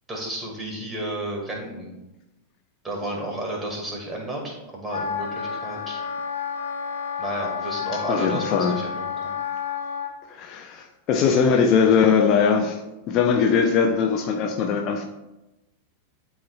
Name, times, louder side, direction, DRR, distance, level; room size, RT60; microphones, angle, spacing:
voice 1, 0.1-1.9 2.8-6.0 7.2-9.4, right 1 dB, 15° right, -2 dB, 2.2 m, -32 dB
Wind instrument woodwind instrument, 4.9-10.1, left 7 dB, 65° left, 0.8 m, -30 dB
voice 2, 8.1-8.7 10.3-12.8 13.1-15.0, left 6 dB, 35° left, 3 dB, 0.6 m, -20 dB
11.5 x 4.3 x 2.4 m, 0.99 s
figure-of-eight pair, 90°, 0 cm